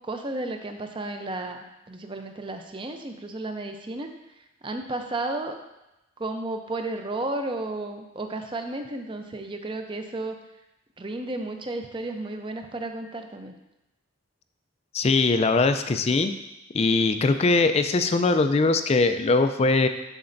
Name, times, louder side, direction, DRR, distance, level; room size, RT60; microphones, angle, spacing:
voice 1, 0.1-4.1 4.6-5.6 6.2-10.3 11.0-13.5, right 2 dB, 25° right, 5 dB, 0.5 m, -33 dB
voice 2, 14.9-16.3 16.7-19.9, left 3 dB, 30° left, 9 dB, 0.3 m, -21 dB
12.5 x 4.3 x 2.6 m, 0.94 s
head